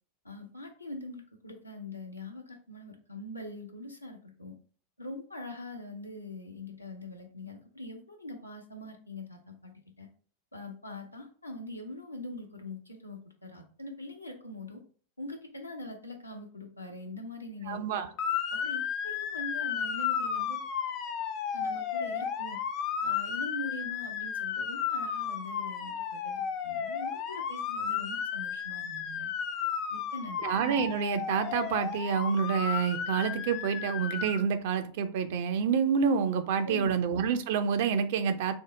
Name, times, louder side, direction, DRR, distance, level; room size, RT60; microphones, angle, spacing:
voice 1, 0.2-4.6 5.0-10.1 10.5-14.8 15.2-18.1 18.5-20.6 21.5-22.6 23.0-29.3 29.9-30.4 36.6-36.9, left 2 dB, 85° left, 0.7 m, -43 dB
voice 2, 17.7-18.1 30.4-38.5, right 6 dB, 50° right, 0.4 m, -28 dB
Motor vehicle (road) / Siren, 18.2-34.4, left 8 dB, 40° left, 0.4 m, -33 dB
3.5 x 2.0 x 3.8 m
figure-of-eight pair, 90°, 0 cm